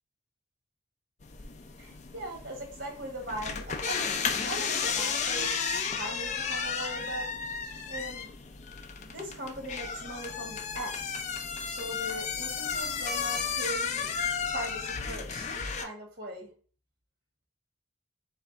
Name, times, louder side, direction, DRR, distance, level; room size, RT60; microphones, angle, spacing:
sound 1, 1.2-15.8, left 6 dB, 35° left, 0.4 m, -33 dB
voice 1, 1.8-7.3 7.9-8.3 9.0-11.2 11.6-14.1 14.5-16.5, right 1 dB, 50° right, 2 dB, 1.3 m, -40 dB
3.4 x 3.3 x 3.9 m, 0.41 s
head